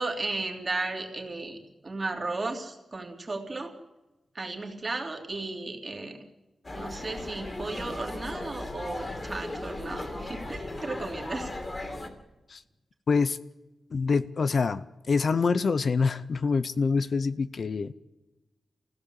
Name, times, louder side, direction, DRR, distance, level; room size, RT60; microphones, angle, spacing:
voice 1, 0.0-3.7 4.3-6.2 6.7-11.5, right 3 dB, 30° right, 2 dB, 3.2 m, -35 dB
sound 1, 6.6-12.1, left 2 dB, 25° left, 2.9 m, -37 dB
voice 2, 13.1-13.4 13.9-17.9, left 4 dB, 55° left, 14 dB, 0.7 m, -26 dB
26.0 x 16.0 x 8.2 m, 1.0 s
wide cardioid pair, 130°, 0 cm